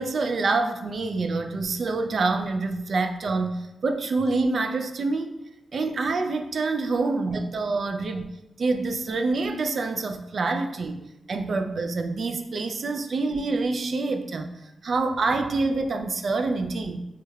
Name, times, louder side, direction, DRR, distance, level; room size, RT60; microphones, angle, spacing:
voice 1, 0.0-5.3 5.7-8.3 8.6-11.0 11.3-14.5 14.8-17.0, right 3 dB, 65° right, 6 dB, 0.3 m, -26 dB
4.6 x 2.1 x 2.3 m, 0.91 s
cardioid pair, 80°, 0 cm